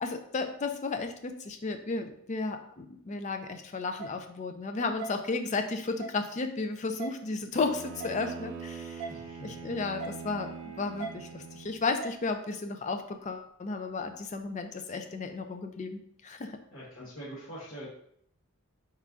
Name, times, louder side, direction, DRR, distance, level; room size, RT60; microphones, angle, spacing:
voice 1, 0.0-9.0 9.4-16.6, left 3 dB, 35° left, 7 dB, 0.4 m, -34 dB
sound 1, 4.0-4.1 5.0-5.1 6.0-6.2 7.0-7.1 8.0-8.2 9.0-9.1 10.0-10.2 11.0-11.1 12.0-12.2, right 4 dB, 30° right, 0.8 m, -38 dB
Bowed string instrument, 7.5-12.0, right 5 dB, 60° right, 0.5 m, -43 dB
voice 2, 9.1-9.6 16.7-17.9, equal, 60° left, -8 dB, 1.2 m, -44 dB
4.2 x 2.5 x 3.6 m, 0.67 s
head